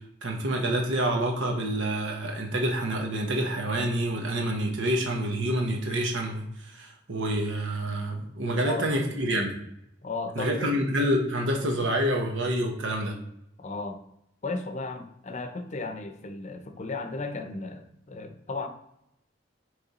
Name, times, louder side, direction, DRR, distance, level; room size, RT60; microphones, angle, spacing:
voice 1, 0.2-9.5 10.3-13.1, right 1 dB, 90° right, 1 dB, 1.0 m, -27 dB
voice 2, 10.0-10.8 13.6-14.0 14.4-18.7, left 3 dB, 40° left, 8 dB, 0.6 m, -35 dB
6.7 x 3.3 x 4.2 m, 0.78 s
head